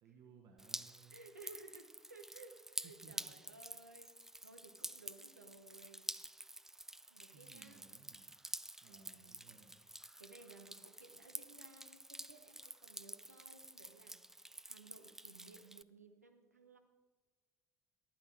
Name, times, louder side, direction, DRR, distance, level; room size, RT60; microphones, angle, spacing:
voice 1, 0.0-1.3 2.8-3.3 7.3-8.3 8.8-9.8, right 6 dB, 55° right, 3 dB, 1.5 m, -62 dB
Drip, 0.6-15.8, right 1 dB, 5° right, 0.3 m, -49 dB
voice 2, 1.1-6.1 7.1-7.8 8.8-9.4 10.2-16.8, right 3 dB, 85° right, 6 dB, 0.9 m, -59 dB
15.0 x 11.5 x 4.6 m, 1.3 s
figure-of-eight pair, 55°, 8 cm